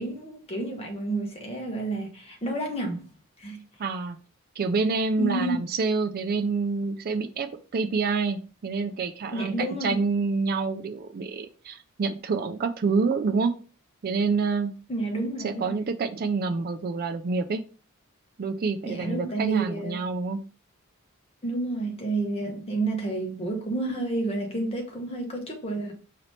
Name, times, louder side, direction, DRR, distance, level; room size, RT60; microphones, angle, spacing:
voice 1, 0.0-3.1 3.4-3.6 5.2-5.6 9.3-10.0 14.9-15.8 18.8-20.0 21.4-25.9, right 2 dB, 30° left, 1.1 m, -30 dB
voice 2, 3.8-4.2 4.6-13.5 14.0-14.7 15.4-17.6 18.4-20.4, right 4 dB, 45° right, 0.4 m, -27 dB
5.0 x 2.8 x 3.1 m
head